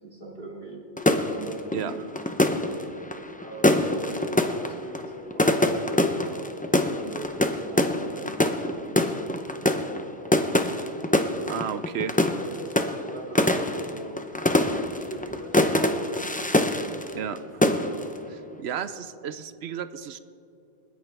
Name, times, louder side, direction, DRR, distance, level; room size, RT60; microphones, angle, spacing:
voice 1, 0.0-0.8 1.4-2.1 3.4-6.4 7.0-9.3 9.6-10.1 12.3-15.9, right 1 dB, 50° right, -2 dB, 2.8 m, -41 dB
sound 1, 1.0-17.4 17.6-18.2, left 1 dB, 10° left, 0.4 m, -24 dB
voice 2, 11.5-12.1 17.1-17.6 18.3-20.2, right 8 dB, 65° right, 13 dB, 0.8 m, -33 dB
29.0 x 10.0 x 3.4 m, 2.7 s
omnidirectional pair, 1.2 m